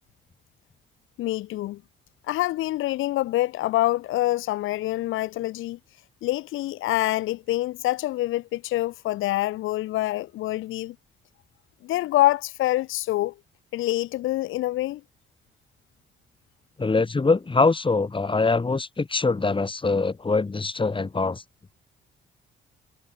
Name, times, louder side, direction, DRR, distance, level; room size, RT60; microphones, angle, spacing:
voice 1, 1.2-1.8 2.3-5.8 6.2-10.9 11.8-13.3 13.7-15.0, left 16 dB, 90° left, 2.6 m, -26 dB
voice 2, 16.8-21.4, left 3 dB, 25° left, 7.4 m, -23 dB
cardioid pair, 90°, 20 cm